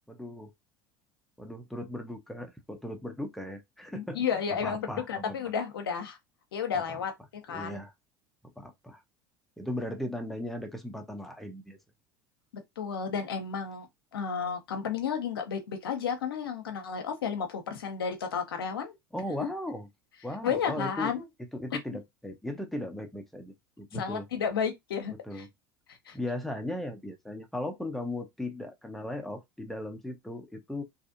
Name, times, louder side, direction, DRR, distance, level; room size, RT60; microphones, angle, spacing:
voice 1, 0.1-0.5 1.4-4.2 4.6-5.3 6.9-7.0 7.5-7.9 8.6-9.0 9.6-11.8 19.1-19.9 20.2-21.1 21.5-24.3 25.2-25.5 26.1-30.8, left 1 dB, ahead, 0.7 m, -37 dB
voice 2, 3.9-6.2 6.5-7.8 12.8-13.9 14.1-18.9 20.4-21.2 23.9-25.5 25.9-26.2, left 7 dB, 90° left, 0.6 m, -32 dB
2.6 x 2.5 x 2.5 m
hypercardioid pair, 80°, 12 cm